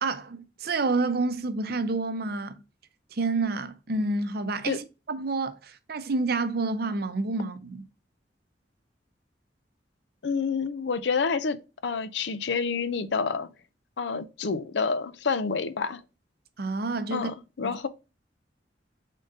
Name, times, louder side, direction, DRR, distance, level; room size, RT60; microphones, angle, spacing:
voice 1, 0.0-2.6 3.1-7.9 16.6-17.3 17.6-17.8, right 3 dB, 55° right, 0.6 m, -29 dB
voice 2, 10.2-13.5 14.0-16.0 17.1-17.9, left 5 dB, 70° left, 0.5 m, -28 dB
3.9 x 3.7 x 3.6 m
head